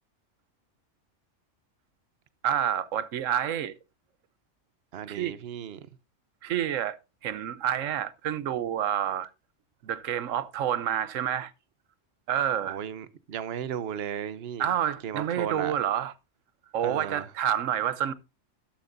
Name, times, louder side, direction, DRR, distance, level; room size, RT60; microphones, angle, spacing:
voice 1, 2.4-3.7 5.1-5.3 6.4-7.0 7.2-9.3 9.8-11.5 12.3-12.8 14.6-16.1 16.7-18.1, right 10 dB, 85° right, 1.1 m, -28 dB
voice 2, 4.9-5.8 12.7-14.7 15.0-15.7 16.8-17.2, right 9 dB, 55° right, 1.0 m, -35 dB
12.5 x 11.5 x 2.6 m
omnidirectional pair, 1.3 m